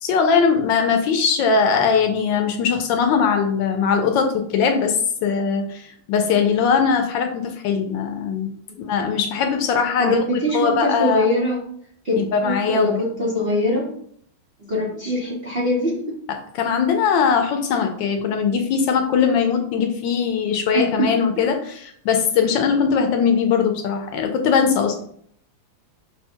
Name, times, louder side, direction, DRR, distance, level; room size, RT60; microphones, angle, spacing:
voice 1, 0.0-5.0 5.2-5.8 6.1-8.5 8.9-10.2 10.5-11.3 12.2-12.9 16.6-24.9, left 6 dB, 75° left, 5 dB, 1.2 m, -20 dB
voice 2, 10.0-11.6 12.0-13.9 14.6-16.2 20.7-21.6, left 1 dB, 40° right, -5 dB, 0.8 m, -23 dB
5.4 x 2.2 x 4.3 m, 0.64 s
omnidirectional pair, 2.2 m